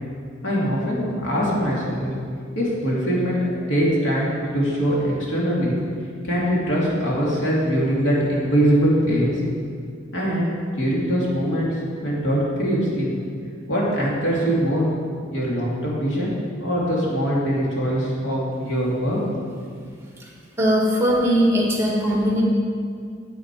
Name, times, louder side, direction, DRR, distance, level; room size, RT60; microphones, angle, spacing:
voice 1, 0.4-2.1 2.5-5.8 6.2-9.4 10.1-11.7 12.0-13.2 13.7-14.8 15.3-16.3 16.6-19.2 19.5-19.6, equal, 85° left, -5 dB, 2.7 m, -22 dB
voice 2, 20.6-22.4, equal, 15° right, -2 dB, 1.5 m, -20 dB
8.9 x 8.3 x 4.8 m, 2.2 s
head